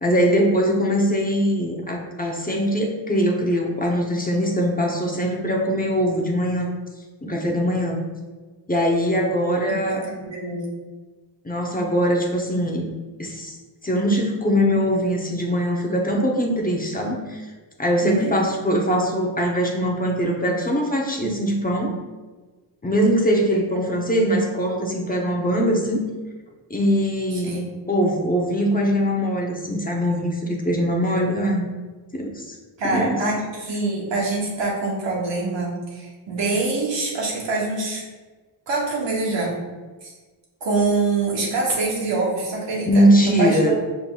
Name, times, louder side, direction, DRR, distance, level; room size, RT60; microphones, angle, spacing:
voice 1, 0.0-6.7 7.2-8.0 8.7-10.0 11.4-12.9 13.2-13.5 13.8-17.4 17.8-22.0 22.8-26.0 26.7-27.6 27.9-31.7 32.1-32.5 32.8-33.2 42.9-43.7, equal, 20° left, -1 dB, 0.9 m, -21 dB
voice 2, 9.8-10.7 18.0-18.3 27.4-27.7 32.8-38.0 38.7-39.6 40.0-40.1 40.6-43.7, right 3 dB, 75° right, -3 dB, 1.5 m, -25 dB
5.3 x 3.9 x 2.4 m, 1.3 s
cardioid pair, 70°, 45 cm